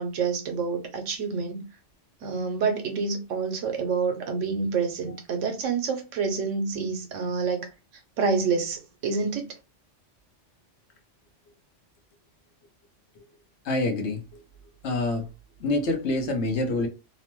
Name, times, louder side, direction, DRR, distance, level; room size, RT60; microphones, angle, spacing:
voice 1, 0.0-1.6 2.2-7.7 8.2-9.5, right 5 dB, 90° right, 1.1 m, -28 dB
voice 2, 13.6-14.4 14.8-15.3 15.6-16.9, left 2 dB, 70° left, 0.9 m, -26 dB
2.9 x 2.1 x 2.9 m
omnidirectional pair, 1.2 m